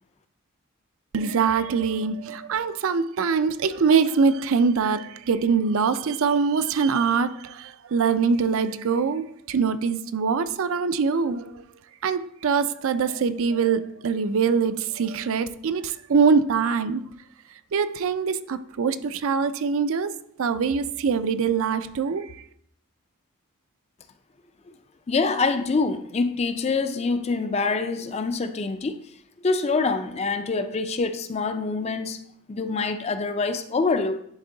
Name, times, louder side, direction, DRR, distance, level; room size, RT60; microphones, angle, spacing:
voice 1, 1.1-11.6 12.0-17.0 17.7-22.4, right 5 dB, 65° right, 0.4 m, -23 dB
voice 2, 25.1-29.0 29.4-32.2 32.5-34.2, left 4 dB, 30° left, 0.4 m, -25 dB
10.5 x 3.6 x 3.8 m
head